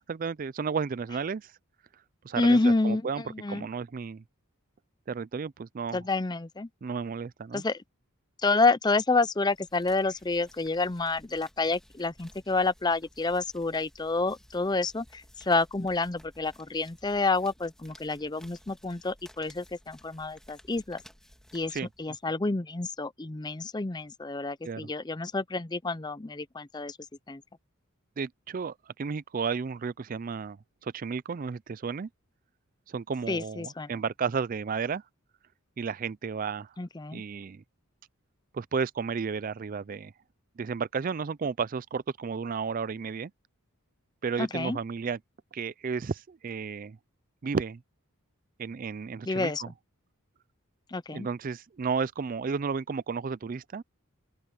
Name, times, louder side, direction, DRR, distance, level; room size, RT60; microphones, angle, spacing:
voice 1, 0.0-1.5 2.2-3.2 3.5-4.2 5.1-6.0 6.8-7.6 21.7-21.9 24.6-24.9 28.2-32.1 32.9-35.0 35.8-36.7 37.1-37.6 38.5-40.1 40.6-43.3 44.2-45.2 45.5-47.0 47.4-47.8 48.6-49.7 51.1-53.8, right 5 dB, 40° right, 0.4 m, -33 dB
voice 2, 2.4-3.7 5.9-6.7 7.5-7.8 8.4-21.0 21.5-27.0 27.3-27.4 33.3-33.9 36.8-37.2 44.4-44.8 49.3-49.6 50.9-51.3, left 3 dB, 20° left, 0.5 m, -28 dB
sound 1, 9.4-22.2, equal, ahead, 1.8 m, -57 dB
open air
head